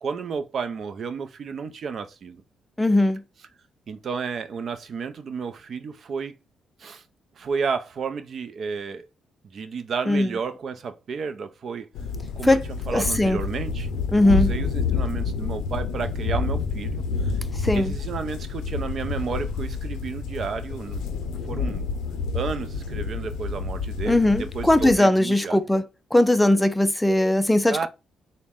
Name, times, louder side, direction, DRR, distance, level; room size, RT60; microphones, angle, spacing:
voice 1, 0.0-2.4 3.9-6.3 6.8-7.0 7.4-9.1 9.4-11.9 12.4-12.6 12.9-17.3 17.7-21.1 21.4-21.9 22.3-25.6 27.7-27.9, right 5 dB, 55° right, 0.5 m, -32 dB
voice 2, 2.8-3.2 10.1-10.3 12.4-12.6 12.9-13.4 14.1-14.5 17.6-17.9 24.1-25.8 26.1-27.9, left 1 dB, 5° left, 0.4 m, -19 dB
sound 1, 11.9-24.9, left 4 dB, 85° left, 0.5 m, -29 dB
4.0 x 2.1 x 3.6 m
cardioid pair, 90°, 0 cm